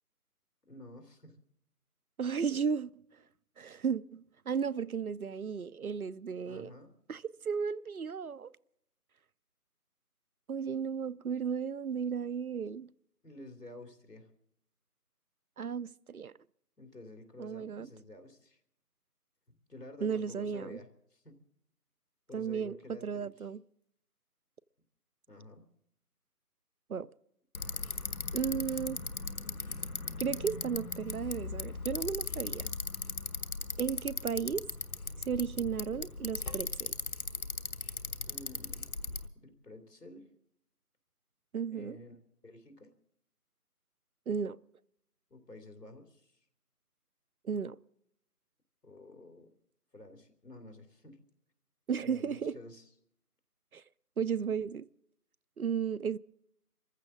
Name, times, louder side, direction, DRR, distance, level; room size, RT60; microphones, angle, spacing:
voice 1, 0.7-1.4 6.4-6.9 13.2-14.3 16.8-18.6 19.5-21.4 22.3-23.5 25.3-25.6 28.3-28.7 38.2-38.9 39.3-40.3 41.7-42.9 45.3-46.4 48.8-49.5 49.9-51.2 52.0-52.9, left 1 dB, 85° left, 3.0 m, -51 dB
voice 2, 2.2-2.9 3.6-6.7 7.1-8.5 10.5-12.9 15.6-16.3 17.4-17.9 20.0-20.8 22.3-23.6 26.9-27.1 28.3-29.0 30.2-32.7 33.8-34.7 35.3-36.9 41.5-42.0 44.3-44.6 47.4-47.8 51.9-52.6 53.7-53.8 54.2-54.9 55.6-56.2, right 6 dB, 65° right, 0.5 m, -34 dB
Bicycle, 27.5-39.3, left 3 dB, 65° left, 1.2 m, -38 dB
24.0 x 15.0 x 3.7 m
figure-of-eight pair, 165°, 47 cm